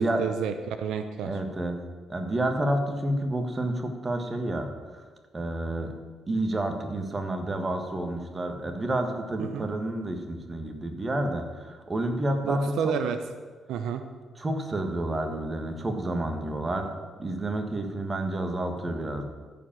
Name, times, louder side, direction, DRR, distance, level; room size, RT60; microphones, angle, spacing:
voice 1, 0.0-1.3 9.4-9.7 12.4-13.2 13.7-14.0, right 7 dB, 85° right, 8 dB, 0.7 m, -30 dB
voice 2, 1.2-1.8 2.1-5.1 5.3-5.9 6.3-13.0 14.4-16.9 17.2-19.2, right 1 dB, 25° right, 5 dB, 1.7 m, -29 dB
13.5 x 5.1 x 7.5 m, 1.4 s
cardioid pair, 90°, 0 cm